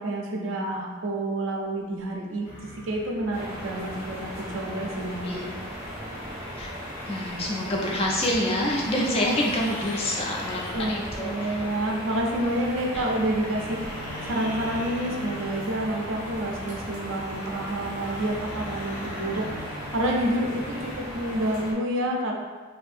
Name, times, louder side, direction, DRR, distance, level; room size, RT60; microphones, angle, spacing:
voice 1, 0.0-5.5 10.7-22.3, right 1 dB, 60° right, 0 dB, 0.4 m, -29 dB
sound 1, 2.4-20.9, left 1 dB, 80° left, 0.6 m, -41 dB
sound 2, 3.3-21.7, equal, 30° right, 0.7 m, -37 dB
voice 2, 7.1-11.6 12.9-13.0, left 1 dB, 25° left, -2 dB, 0.3 m, -27 dB
2.6 x 2.5 x 2.4 m, 1.4 s
head